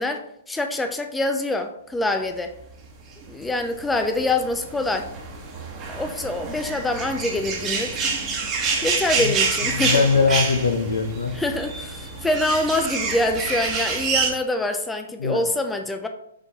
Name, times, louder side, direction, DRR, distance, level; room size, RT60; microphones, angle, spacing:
voice 1, 0.0-2.5 3.3-5.1 5.9-8.0 8.8-10.0 11.3-16.1, left 2 dB, 5° left, 6 dB, 0.4 m, -25 dB
sound 1, 3.2-14.3, right 4 dB, 20° right, 1.2 m, -27 dB
voice 2, 9.7-11.3 15.2-15.4, left 5 dB, 65° left, 8 dB, 0.8 m, -21 dB
6.8 x 3.9 x 3.5 m, 0.75 s
figure-of-eight pair, 120°, 0 cm